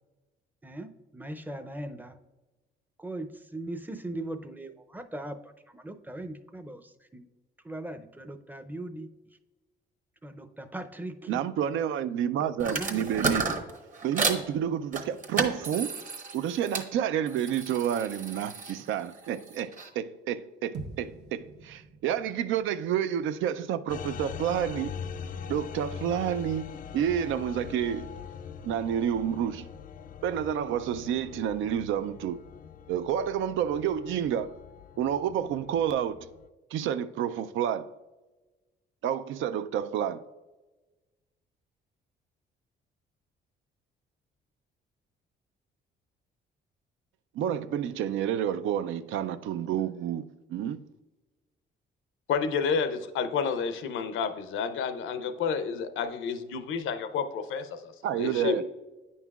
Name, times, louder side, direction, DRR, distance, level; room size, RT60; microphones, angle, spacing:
voice 1, 0.6-2.2 3.0-7.3 7.6-9.1 10.2-11.5 12.4-13.3, right 1 dB, 10° right, 0.5 m, -40 dB
voice 2, 11.3-13.6 14.0-16.0 16.3-24.9 25.5-26.7 26.9-28.1 28.6-29.7 30.2-32.4 32.9-34.6 35.0-36.3 36.7-37.9 39.0-40.2 47.3-50.9 58.0-58.6, right 9 dB, 80° right, 0.4 m, -29 dB
sound 1, 12.6-14.4 14.9-16.9 17.3-19.9, right 4 dB, 40° right, 1.1 m, -33 dB
sound 2, 20.7-25.1, right 4 dB, 60° right, 0.8 m, -47 dB
sound 3, 23.9-36.5, left 7 dB, 45° left, 0.4 m, -42 dB
voice 3, 52.3-58.6, left 6 dB, 80° left, 0.6 m, -30 dB
9.2 x 5.5 x 2.4 m
cardioid pair, 90°, 20 cm